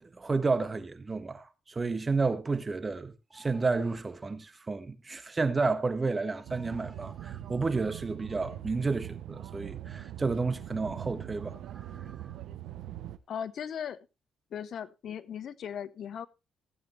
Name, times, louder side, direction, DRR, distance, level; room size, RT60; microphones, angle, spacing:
voice 1, 0.0-12.2, right 3 dB, 25° right, 1.4 m, -31 dB
sound 1, 6.4-13.2, right 11 dB, 80° right, 0.8 m, -42 dB
voice 2, 13.3-14.0 14.5-16.3, left 8 dB, 60° left, 0.8 m, -37 dB
15.5 x 8.8 x 3.2 m
cardioid pair, 90°, 0 cm